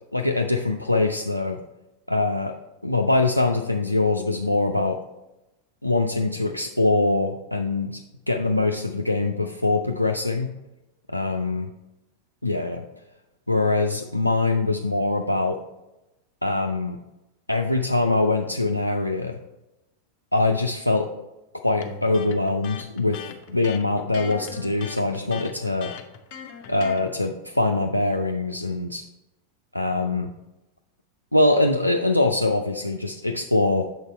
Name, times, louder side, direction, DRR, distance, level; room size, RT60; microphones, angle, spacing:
voice 1, 0.1-1.6 2.1-2.5 2.8-5.0 5.8-8.0 8.3-10.5 11.1-11.7 12.4-12.8 13.5-15.6 16.4-17.0 17.5-19.4 20.3-21.1 21.6-23.2 23.5-25.9 26.7-29.0 29.7-30.3 31.3-33.9, left 2 dB, 85° left, 3 dB, 0.3 m, -23 dB
Electric guitar, 21.8-27.1, left 7 dB, 45° left, 0.6 m, -39 dB
6.9 x 4.1 x 4.4 m, 0.96 s
figure-of-eight pair, 90°, 0 cm